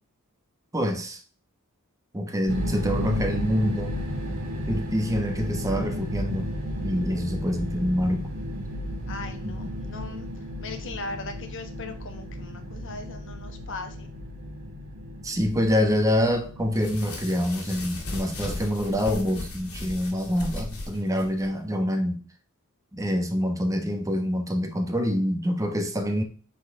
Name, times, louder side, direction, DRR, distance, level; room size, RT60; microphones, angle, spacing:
voice 1, 0.7-1.2 2.1-4.0 4.7-6.5 6.8-8.3 15.2-22.2 22.9-26.2, equal, 15° right, 1.0 m, -26 dB
sound 1, 2.5-18.3, equal, 70° right, 2.3 m, -34 dB
voice 2, 9.1-14.1, left 3 dB, 60° left, 1.1 m, -39 dB
sound 2, 16.7-21.5, left 2 dB, 75° left, 1.9 m, -36 dB
8.2 x 4.1 x 3.6 m
head